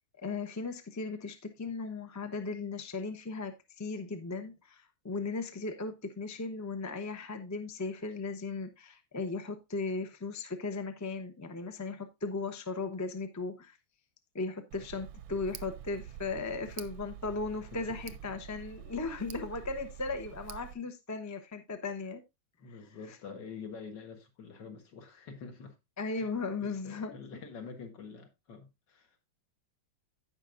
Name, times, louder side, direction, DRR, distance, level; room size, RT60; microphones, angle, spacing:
voice 1, 0.2-13.8 14.3-22.2 23.1-23.2 26.0-27.1, left 4 dB, 25° left, 0.3 m, -37 dB
Tick, 14.7-20.7, right 10 dB, 85° right, 1.4 m, -47 dB
voice 2, 22.6-25.8 26.2-26.3 26.6-29.2, left 5 dB, 60° left, 2.1 m, -47 dB
15.5 x 5.3 x 2.5 m
omnidirectional pair, 2.2 m